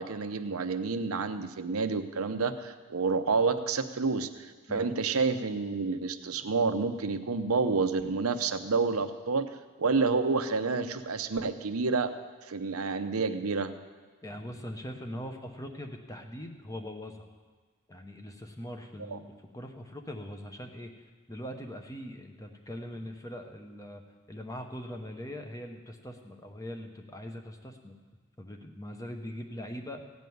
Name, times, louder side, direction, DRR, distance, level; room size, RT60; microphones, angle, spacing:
voice 1, 0.0-9.5 9.8-12.1 12.5-13.7 19.1-19.2, right 4 dB, 75° right, 9 dB, 0.8 m, -29 dB
voice 2, 14.2-17.3 17.9-24.0 24.3-27.9 28.4-30.0, equal, 15° left, 5 dB, 1.0 m, -41 dB
16.0 x 5.3 x 9.4 m, 1.4 s
head